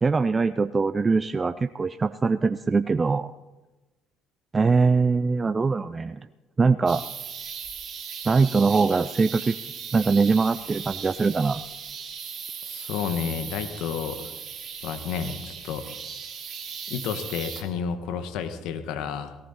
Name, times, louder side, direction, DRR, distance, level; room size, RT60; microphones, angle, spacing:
voice 1, 0.0-3.3 4.5-6.2 6.6-7.0 8.2-9.6 9.9-11.6, right 4 dB, 30° right, 12 dB, 0.5 m, -22 dB
sound 1, 6.9-17.6, right 7 dB, 50° right, 2.6 m, -38 dB
voice 2, 12.6-14.2 14.8-15.9 16.9-19.4, left 7 dB, 70° left, 9 dB, 1.4 m, -31 dB
17.5 x 14.5 x 4.2 m, 1.1 s
hypercardioid pair, 60°, 0 cm